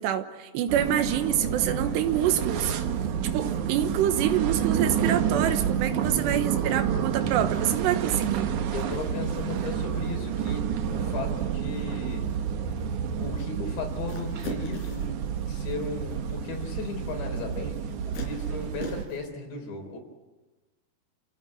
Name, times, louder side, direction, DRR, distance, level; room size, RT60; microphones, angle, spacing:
voice 1, 0.0-2.7 3.2-8.5, right 10 dB, 85° right, 9 dB, 3.4 m, -26 dB
sound 1, 0.7-19.0, right 8 dB, 65° right, 2.0 m, -29 dB
voice 2, 8.7-12.3 12.7-12.8 13.2-15.1 15.5-20.0, left 3 dB, 85° left, 3 dB, 6.0 m, -36 dB
sound 2, 14.1-15.2 17.0-17.1 18.1-19.3, left 3 dB, 65° left, 5.8 m, -39 dB
28.5 x 16.0 x 8.6 m, 1.2 s
omnidirectional pair, 4.9 m